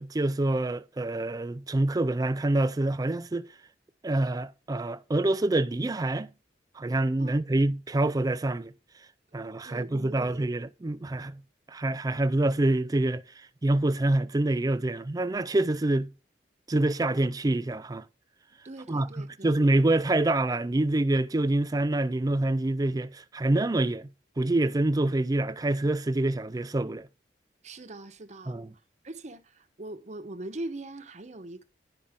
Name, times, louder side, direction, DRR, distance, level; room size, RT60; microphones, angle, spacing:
voice 1, 0.0-3.5 4.0-6.3 6.8-8.7 9.3-11.4 11.7-13.2 13.6-16.1 16.7-18.0 18.9-24.1 24.4-27.1 28.5-28.7, right 2 dB, 20° right, 0.4 m, -26 dB
voice 2, 9.6-10.5 18.6-19.7 27.6-28.6 29.0-31.6, right 2 dB, 40° right, 0.9 m, -41 dB
10.0 x 5.4 x 3.5 m
head